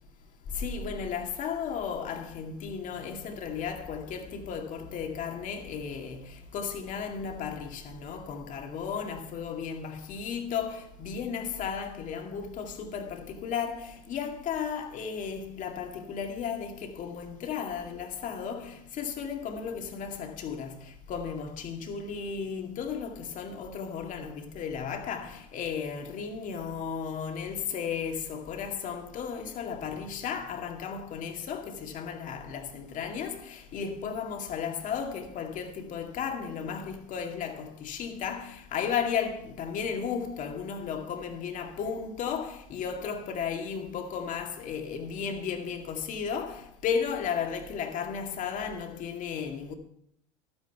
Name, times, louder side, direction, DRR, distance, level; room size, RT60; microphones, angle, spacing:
voice 1, 0.5-49.7, left 6 dB, 45° left, 2.1 m, -34 dB
12.5 x 9.5 x 4.6 m
hypercardioid pair, 90°, 18 cm